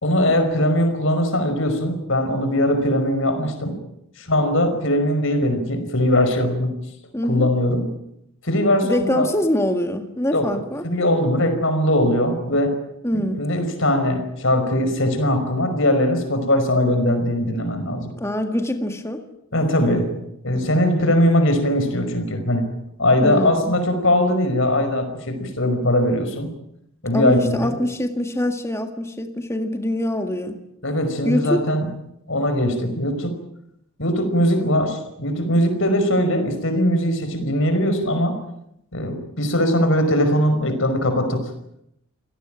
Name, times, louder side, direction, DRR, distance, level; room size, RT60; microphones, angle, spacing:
voice 1, 0.0-3.8 4.2-6.8 7.3-7.9 8.4-9.3 10.3-12.7 13.1-18.1 19.5-22.7 23.0-26.5 27.0-27.7 30.8-31.9 32.3-33.4 34.0-38.4 38.9-41.5, left 1 dB, 60° left, 8 dB, 5.3 m, -20 dB
voice 2, 7.1-7.5 8.8-10.8 13.0-13.5 18.2-19.2 23.2-23.7 27.1-30.6 31.2-31.6, left 1 dB, 10° left, 6 dB, 1.9 m, -24 dB
27.5 x 17.5 x 9.1 m, 0.78 s
head